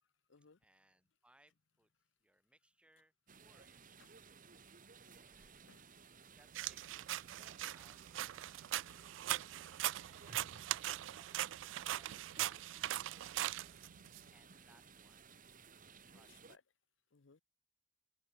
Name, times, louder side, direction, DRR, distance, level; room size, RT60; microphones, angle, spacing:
voice 1, 0.0-0.7 2.0-2.1 4.0-4.5 5.0-5.2 5.7-5.9 8.6-9.2 16.0-16.6 17.1-17.4, left 5 dB, 85° left, 0.8 m, -68 dB
voice 2, 0.6-4.6 5.1-5.6 6.3-7.0 7.4-9.1 14.3-16.4, right 1 dB, 5° right, 1.8 m, -71 dB
sound 1, 3.3-16.6, right 5 dB, 45° right, 1.6 m, -59 dB
sound 2, 6.5-14.2, right 14 dB, 75° right, 0.3 m, -41 dB
head